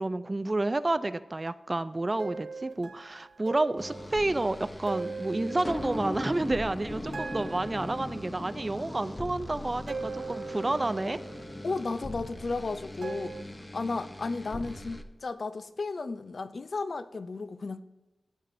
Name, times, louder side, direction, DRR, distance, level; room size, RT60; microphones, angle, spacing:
voice 1, 0.0-11.2, right 2 dB, 30° right, 0.3 m, -30 dB
sound 1, 2.2-6.8 7.1-8.7 9.9-11.9 13.0-13.4, right 4 dB, 80° right, 0.7 m, -41 dB
sound 2, 3.8-15.0, left 1 dB, 15° left, 0.6 m, -40 dB
voice 2, 11.6-17.8, left 3 dB, 60° left, 0.4 m, -34 dB
15.0 x 9.1 x 2.6 m
wide cardioid pair, 95°, 0 cm